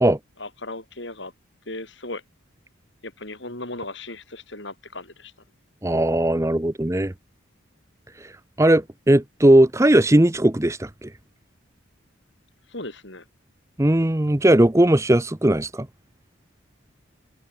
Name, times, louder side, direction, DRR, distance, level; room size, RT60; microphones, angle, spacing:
voice 1, 0.4-1.3 1.7-2.2 3.0-5.3 12.7-13.2, left 2 dB, 60° left, 6.6 m, -36 dB
voice 2, 5.8-7.1 8.6-11.1 13.8-15.9, right 1 dB, 15° right, 0.7 m, -18 dB
head